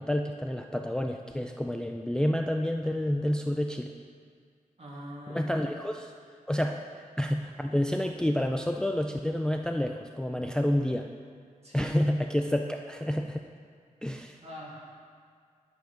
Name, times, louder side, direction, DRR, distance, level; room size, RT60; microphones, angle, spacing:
voice 1, 0.0-3.9 5.3-6.1 6.5-6.8 7.2-11.1 11.7-13.4 14.0-14.4, left 1 dB, 5° left, 4 dB, 0.3 m, -29 dB
voice 2, 4.8-5.5 11.6-12.0 14.4-15.1, equal, 50° right, -5 dB, 2.3 m, -43 dB
10.5 x 4.6 x 5.2 m, 2.1 s
wide cardioid pair, 95°, 14 cm